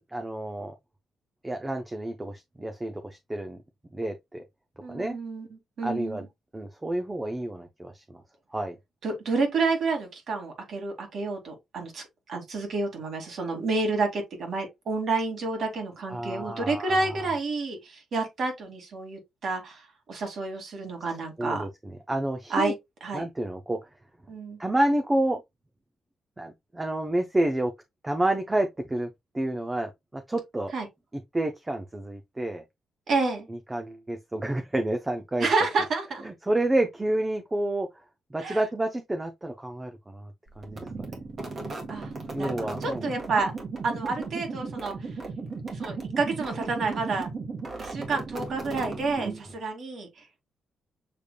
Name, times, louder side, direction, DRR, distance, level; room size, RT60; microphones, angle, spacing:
voice 1, 0.1-0.7 1.4-3.6 3.9-4.4 4.9-5.2 5.8-6.3 6.5-8.2 8.5-8.8 16.1-17.1 21.4-22.7 23.1-23.8 24.6-25.4 26.4-27.7 28.0-29.1 29.3-30.7 31.3-32.6 33.5-35.5 36.2-37.9 38.3-40.3 40.6-41.1 42.3-43.1 49.2-49.3, right 1 dB, 15° right, 0.6 m, -29 dB
voice 2, 4.8-6.3 9.0-19.8 20.1-21.6 22.5-22.7 23.0-23.3 24.3-24.6 30.7-30.9 33.1-33.5 35.4-36.2 38.4-38.6 41.9-42.1 42.4-43.5 43.8-44.9 45.7-47.3 47.8-50.4, right 3 dB, 60° right, 2.2 m, -29 dB
sound 1, 40.6-49.6, right 4 dB, 40° right, 1.6 m, -36 dB
6.7 x 3.4 x 2.2 m
cardioid pair, 125°, 0 cm